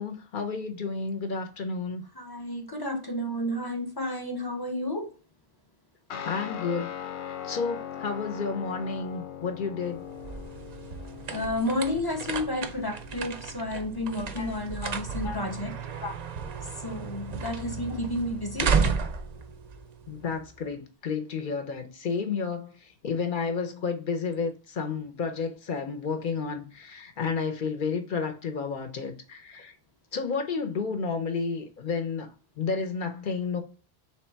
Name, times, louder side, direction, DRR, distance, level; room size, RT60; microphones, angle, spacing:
voice 1, 0.0-2.0 6.3-6.9 7.2-10.0 14.4-14.6 14.8-15.0 15.2-15.4 16.0-16.1 20.1-29.7 30.1-32.3 32.6-33.6, left 5 dB, 55° left, 0.8 m, -31 dB
voice 2, 2.2-5.1 11.3-15.7 16.8-18.8, left 1 dB, 30° left, 0.5 m, -31 dB
Guitar, 6.1-14.9, left 8 dB, 85° left, 0.9 m, -41 dB
sound 1, 9.9-20.6, right 5 dB, 55° right, 0.5 m, -33 dB
3.3 x 3.1 x 4.4 m
omnidirectional pair, 1.1 m